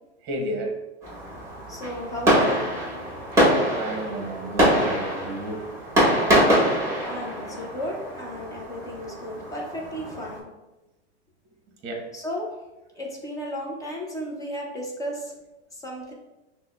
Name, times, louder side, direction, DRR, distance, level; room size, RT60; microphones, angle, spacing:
voice 1, 0.2-0.7 3.4-5.6 11.8-12.1, right 1 dB, 30° right, 1 dB, 0.9 m, -32 dB
Fireworks, 1.0-10.4, equal, 10° right, 1.1 m, -24 dB
voice 2, 1.7-2.8 7.0-10.5 12.1-12.6 13.0-15.3 15.7-16.1, equal, 10° left, -1 dB, 0.4 m, -34 dB
6.0 x 2.1 x 2.3 m, 1.0 s
hypercardioid pair, 135°, 34 cm